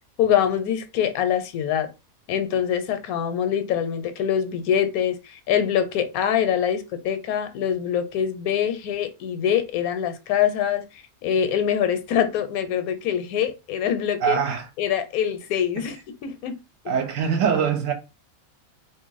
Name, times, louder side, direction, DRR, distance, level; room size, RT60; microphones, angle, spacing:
voice 1, 0.2-1.9 2.3-14.4 14.8-16.0 16.2-16.6, left 9 dB, 80° left, 1.0 m, -24 dB
voice 2, 14.2-14.6 15.8-15.9 16.9-17.9, right 7 dB, 70° right, 1.0 m, -23 dB
2.7 x 2.5 x 3.9 m
omnidirectional pair, 1.5 m